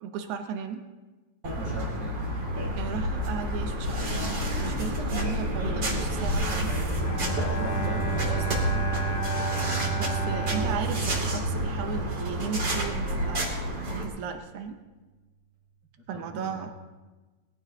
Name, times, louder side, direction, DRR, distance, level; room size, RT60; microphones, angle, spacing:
voice 1, 0.0-0.8 2.7-6.7 8.3-8.6 9.9-13.5 13.9-14.8 16.1-16.7, right 7 dB, 80° right, 6 dB, 1.7 m, -36 dB
sound 1, 1.4-14.0, right 1 dB, 30° right, 2.7 m, -30 dB
voice 2, 1.6-2.2 7.4-8.1 16.0-16.8, left 1 dB, 60° right, -6 dB, 5.3 m, -39 dB
sound 2, 2.6-8.7, left 3 dB, 85° left, 3.9 m, -35 dB
Bowed string instrument, 7.0-12.3, right 4 dB, 45° left, 3.4 m, -31 dB
22.0 x 15.5 x 2.8 m, 1.2 s
omnidirectional pair, 4.7 m